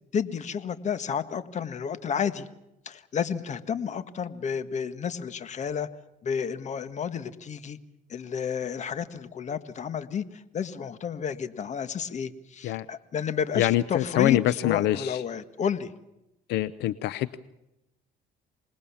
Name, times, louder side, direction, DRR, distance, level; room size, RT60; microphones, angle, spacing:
voice 1, 0.1-2.5 2.8-5.9 6.2-7.8 8.1-15.9, left 7 dB, 45° left, 12 dB, 1.7 m, -31 dB
voice 2, 13.6-15.2 16.5-17.4, left 14 dB, 85° left, 16 dB, 0.8 m, -25 dB
26.0 x 20.5 x 7.2 m, 0.87 s
cardioid pair, 110°, 17 cm